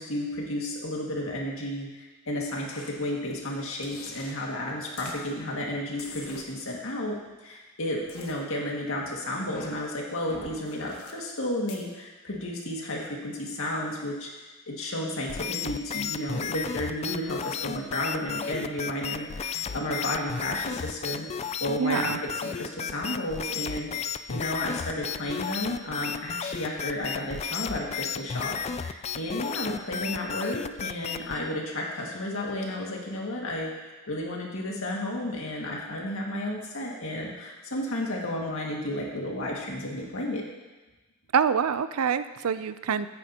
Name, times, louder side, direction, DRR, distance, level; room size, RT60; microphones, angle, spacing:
voice 1, 0.0-14.3 14.7-21.3 21.6-40.4, left 1 dB, 70° left, -2 dB, 2.0 m, -32 dB
sound 1, 2.7-2.9 3.8-4.3 5.0-5.2 6.0-6.4 8.1-8.3 9.4-9.7 10.3-11.1 11.7-11.8, left 3 dB, 85° left, 1.4 m, -43 dB
sound 2, 15.3-31.4, left 7 dB, 30° left, 0.3 m, -33 dB
voice 2, 21.8-22.2 41.3-43.1, right 6 dB, 90° right, 13 dB, 0.5 m, -26 dB
14.5 x 9.1 x 2.9 m, 1.2 s
head